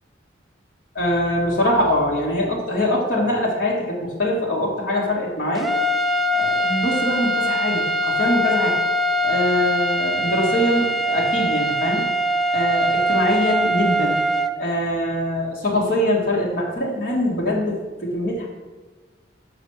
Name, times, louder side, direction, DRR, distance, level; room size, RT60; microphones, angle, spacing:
voice 1, 0.9-5.7 6.3-8.8 9.2-12.1 12.5-14.2 14.6-18.5, left 1 dB, 50° left, -4 dB, 2.1 m, -23 dB
sound 1, 5.5-14.5, equal, ahead, 0.4 m, -22 dB
6.7 x 5.9 x 6.5 m, 1.3 s
head